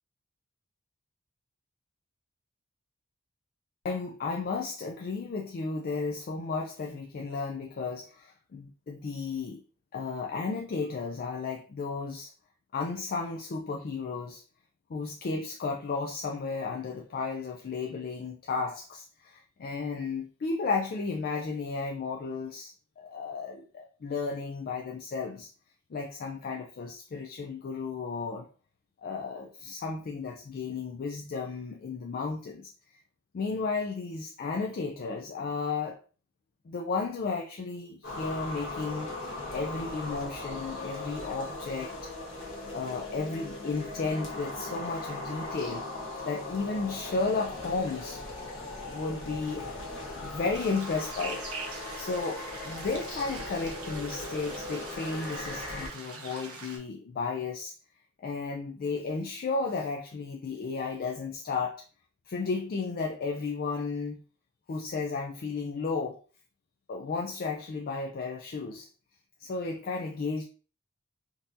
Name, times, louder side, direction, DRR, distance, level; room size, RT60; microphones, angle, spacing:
voice 1, 3.8-9.6 9.9-12.3 12.7-14.4 14.9-25.5 25.9-28.5 29.0-32.7 33.3-36.0 36.7-41.9 42.7-45.8 46.2-48.2 48.8-49.8 50.2-51.5 51.7-57.7 58.2-61.8 62.3-64.2 64.7-66.2 66.9-68.9 69.4-70.4, left 4 dB, 45° left, 1 dB, 0.3 m, -33 dB
sound 1, 38.0-55.9, left 2 dB, 60° left, 1.1 m, -39 dB
sound 2, 50.5-56.8, right 4 dB, 85° right, 0.8 m, -43 dB
3.7 x 2.5 x 2.6 m, 0.38 s
head